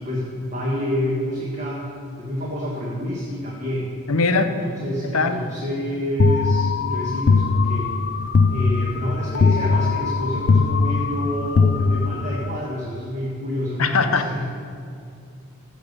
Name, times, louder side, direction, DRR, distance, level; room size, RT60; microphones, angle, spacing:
voice 1, 0.0-1.9 2.2-3.9 4.4-7.9 8.5-14.5, equal, 35° right, -4 dB, 1.4 m, -28 dB
voice 2, 4.1-4.5 5.0-5.4 13.8-14.3, left 4 dB, 85° left, 8 dB, 0.8 m, -20 dB
sound 1, 6.2-12.6, left 4 dB, 50° left, 0.4 m, -20 dB
15.0 x 5.4 x 6.7 m, 2.4 s
head